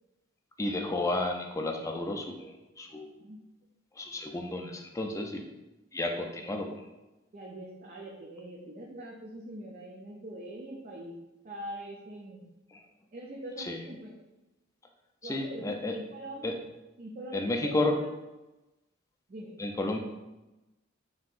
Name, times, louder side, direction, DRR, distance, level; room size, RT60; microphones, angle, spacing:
voice 1, 0.6-3.1 4.0-5.4 5.9-6.7 12.7-12.8 13.6-13.8 15.2-15.9 16.4-16.6 17.3-18.0 19.6-20.0, left 2 dB, 15° left, 3 dB, 0.4 m, -32 dB
voice 2, 2.9-3.4 6.4-6.5 7.3-11.1 11.4-12.4 13.1-14.1 15.2-16.4 17.0-18.1 19.3-19.5, right 1 dB, 40° right, -3 dB, 0.5 m, -43 dB
5.5 x 2.8 x 2.5 m, 1.0 s
head